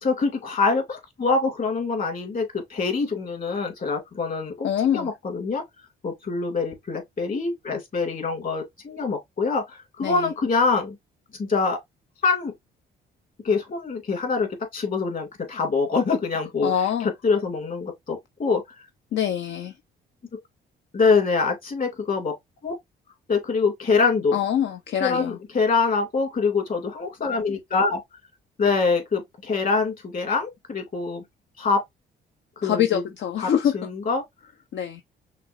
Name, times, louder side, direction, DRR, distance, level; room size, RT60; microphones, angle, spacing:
voice 1, 0.0-5.6 6.0-11.0 11.4-11.8 12.2-12.5 13.4-16.7 17.0-18.6 20.3-20.4 20.9-22.3 22.6-22.7 23.3-24.3 25.0-28.0 28.6-31.2 31.6-31.8 32.6-33.0 33.7-34.2, left 4 dB, 45° left, 2.5 m, -24 dB
voice 2, 4.6-5.1 10.0-10.3 16.6-17.1 19.1-19.7 24.3-25.4 32.6-33.8 34.7-35.0, left 9 dB, 65° left, 0.6 m, -24 dB
5.9 x 2.8 x 2.6 m
cardioid pair, 90°, 20 cm